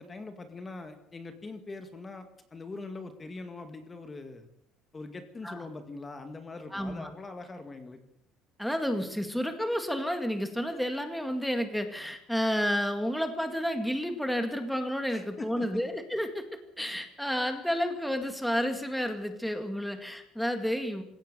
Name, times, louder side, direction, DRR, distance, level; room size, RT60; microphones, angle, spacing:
voice 1, 0.0-4.5 4.9-8.0 15.1-15.7, left 3 dB, 20° left, 7 dB, 2.0 m, -42 dB
voice 2, 6.7-7.1 8.6-16.5 16.8-21.0, equal, ahead, 6 dB, 2.1 m, -31 dB
27.0 x 16.5 x 6.8 m, 0.76 s
cardioid pair, 155°, 0 cm